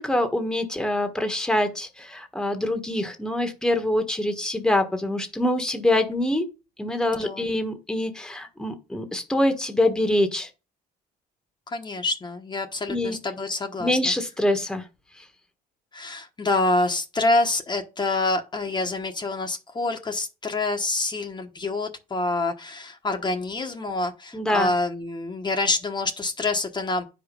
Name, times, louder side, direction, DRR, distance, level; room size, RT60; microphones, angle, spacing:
voice 1, 0.0-6.5 6.8-10.5 12.9-13.2 13.8-14.8 15.2-15.3 24.3-24.7, left 1 dB, 5° left, 1.3 m, -25 dB
voice 2, 11.7-14.0 15.9-27.1, left 2 dB, 25° left, 1.2 m, -26 dB
9.5 x 5.1 x 5.3 m
cardioid pair, 110°, 17 cm